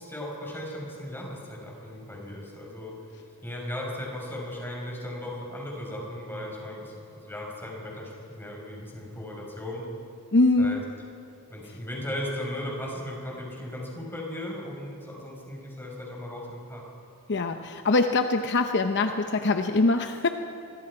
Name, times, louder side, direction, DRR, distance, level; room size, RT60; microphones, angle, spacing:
voice 1, 0.0-2.9 3.4-9.8 10.6-10.8 11.5-16.8, left 1 dB, 10° left, -2 dB, 5.3 m, -37 dB
voice 2, 10.3-10.8 17.3-20.3, left 3 dB, 50° left, 6 dB, 0.8 m, -23 dB
26.5 x 23.5 x 4.9 m, 2.6 s
head